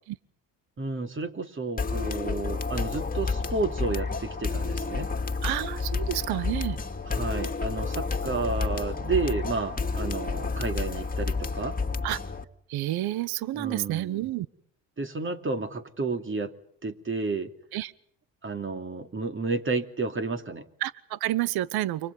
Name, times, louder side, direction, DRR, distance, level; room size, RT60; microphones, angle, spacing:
voice 1, 0.8-5.1 7.1-11.8 13.5-14.2 15.0-16.5 16.8-17.5 18.4-20.7, right 3 dB, 30° right, 7 dB, 3.0 m, -31 dB
sound 1, 1.8-12.4, left 4 dB, 20° left, 2.4 m, -30 dB
voice 2, 5.4-6.8 12.0-12.2 12.7-14.5 17.7-17.9 20.8-22.1, right 15 dB, 70° right, 18 dB, 1.1 m, -29 dB
29.5 x 25.5 x 5.4 m, 0.66 s
supercardioid pair, 65°, 39 cm